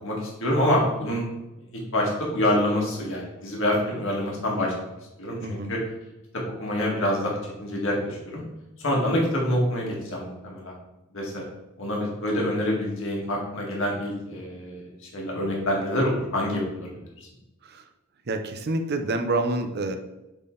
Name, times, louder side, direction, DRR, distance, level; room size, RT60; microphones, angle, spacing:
voice 1, 0.0-1.2 1.9-4.9 5.2-5.8 6.3-8.4 8.8-10.7 11.1-11.4 11.8-17.1, left 1 dB, 60° left, -2 dB, 1.9 m, -26 dB
voice 2, 5.4-5.7 17.6-17.8 18.3-20.0, right 2 dB, 50° right, 7 dB, 0.6 m, -27 dB
8.1 x 3.9 x 3.8 m, 0.97 s
head